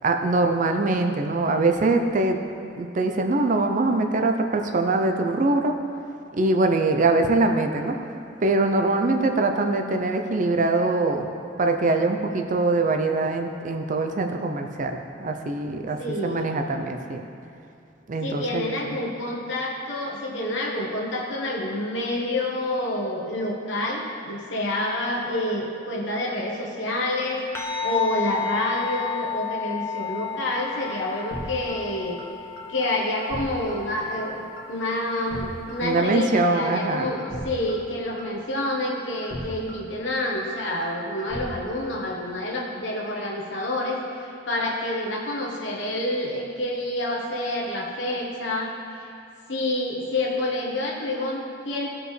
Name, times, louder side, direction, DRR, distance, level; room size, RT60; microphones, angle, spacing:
voice 1, 0.0-2.4 2.8-5.8 6.4-8.0 8.4-11.3 11.6-17.2 18.1-19.0 35.8-37.1, right 2 dB, 45° right, 5 dB, 0.5 m, -23 dB
voice 2, 16.0-16.5 18.2-27.4 27.8-32.2 32.7-34.4 34.7-48.7 49.5-51.9, left 1 dB, 80° left, -2 dB, 1.1 m, -28 dB
sound 1, 27.5-36.2, left 7 dB, 15° left, 0.7 m, -33 dB
sound 2, 30.2-30.3 30.6-30.9 31.2-31.4 31.7-31.8 32.2-32.3 32.6-32.9 33.2-33.4 33.7-33.8 34.2-34.3 34.6-34.9 35.2-35.4 35.7-35.8 36.2-36.3 36.6-36.9 37.2-37.4 37.7-37.8 38.2-38.3 38.6-38.9 39.2-39.4 39.7-39.8 40.2-40.3 40.6-40.9 41.2-41.4, equal, 60° left, 1.7 m, -37 dB
15.0 x 5.0 x 3.2 m, 2.6 s
head